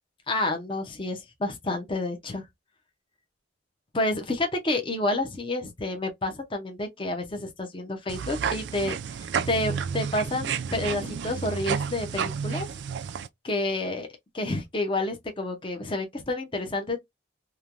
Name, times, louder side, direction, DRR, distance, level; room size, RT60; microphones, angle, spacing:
voice 1, 0.3-2.4 3.9-12.7 13.4-14.1 14.3-17.0, left 2 dB, 25° left, 0.6 m, -29 dB
sound 1, 8.1-13.3, right 7 dB, 60° right, 0.3 m, -31 dB
3.1 x 2.2 x 2.4 m
head